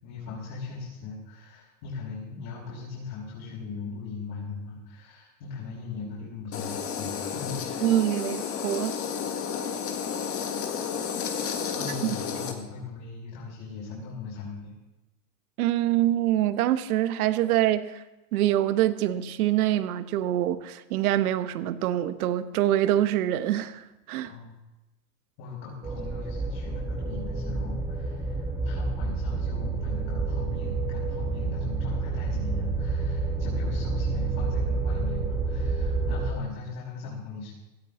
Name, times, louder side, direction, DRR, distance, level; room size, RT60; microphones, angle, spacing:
voice 1, 0.0-8.0 11.7-14.8 24.2-24.5 25.4-37.5, left 4 dB, 50° left, 5.6 m, -39 dB
sound 1, 6.5-12.5, left 7 dB, 30° left, 1.8 m, -32 dB
voice 2, 7.8-9.0 15.6-18.0 18.3-24.3, right 13 dB, 70° right, 1.1 m, -25 dB
sound 2, 25.8-36.3, right 3 dB, 10° right, 1.6 m, -29 dB
17.0 x 13.5 x 3.8 m
hypercardioid pair, 125°, 45 cm